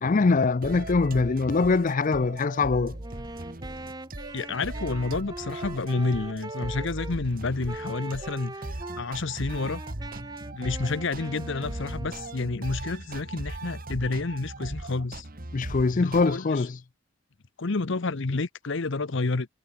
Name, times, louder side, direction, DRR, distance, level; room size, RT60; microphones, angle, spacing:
voice 1, 0.0-2.9 15.5-16.8, left 4 dB, 35° left, 0.4 m, -23 dB
sound 1, 0.6-16.4, right 1 dB, 40° right, 1.9 m, -39 dB
Wind instrument woodwind instrument, 3.0-7.2 7.7-9.1 9.5-12.7, right 2 dB, 20° right, 2.1 m, -41 dB
voice 2, 4.3-8.7 9.0-9.8 10.5-15.2 16.0-16.7 17.6-19.5, left 3 dB, 55° left, 0.8 m, -29 dB
head